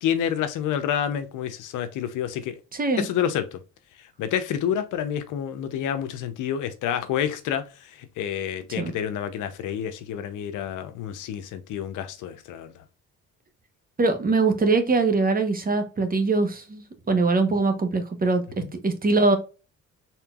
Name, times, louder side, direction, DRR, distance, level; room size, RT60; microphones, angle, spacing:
voice 1, 0.0-2.6 3.0-3.6 4.2-12.7 18.6-18.7, left 9 dB, 85° left, 0.7 m, -28 dB
voice 2, 2.7-3.0 8.8-8.9 14.0-18.4 18.7-19.4, right 3 dB, 30° right, 1.0 m, -22 dB
4.4 x 3.7 x 2.3 m
cardioid pair, 90°, 30 cm